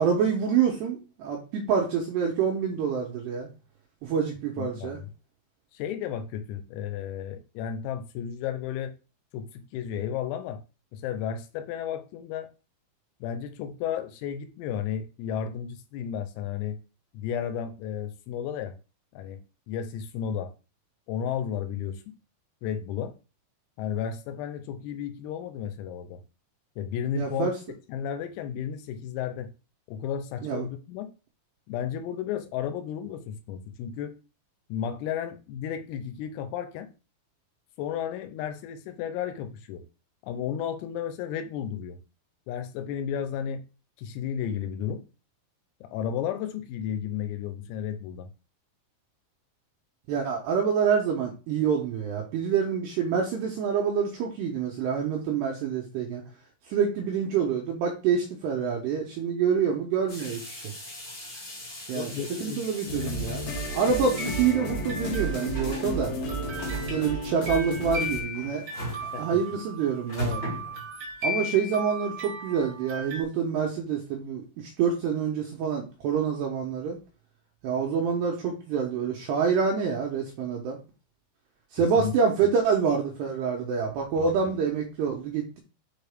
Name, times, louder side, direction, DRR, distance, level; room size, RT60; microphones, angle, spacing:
voice 1, 0.0-3.5 4.0-5.0 27.2-27.5 30.4-30.7 50.1-56.2 56.7-60.6 61.9-62.1 62.4-66.1 66.9-68.6 69.0-70.6 71.2-77.0 77.6-80.8 81.7-85.6, right 6 dB, 80° right, 2.5 m, -27 dB
voice 2, 4.6-5.1 5.7-8.9 9.3-10.6 10.9-12.5 13.2-16.8 17.1-18.8 19.1-19.4 19.7-20.5 21.1-22.2 22.6-23.2 23.8-26.2 26.8-27.5 27.9-29.5 29.9-31.1 31.7-34.2 34.7-36.9 37.8-39.9 40.3-42.0 42.5-43.6 44.0-45.0 45.8-48.3 61.9-62.6 69.1-69.4 82.0-82.1 84.2-84.5, left 8 dB, 85° left, 3.5 m, -33 dB
sound 1, 60.1-71.2, left 1 dB, 30° left, 3.2 m, -40 dB
sound 2, 62.9-68.2, right 1 dB, 60° left, 3.0 m, -32 dB
sound 3, 64.1-65.7 66.3-73.2, equal, 55° right, 1.2 m, -37 dB
7.2 x 4.7 x 3.5 m
omnidirectional pair, 6.0 m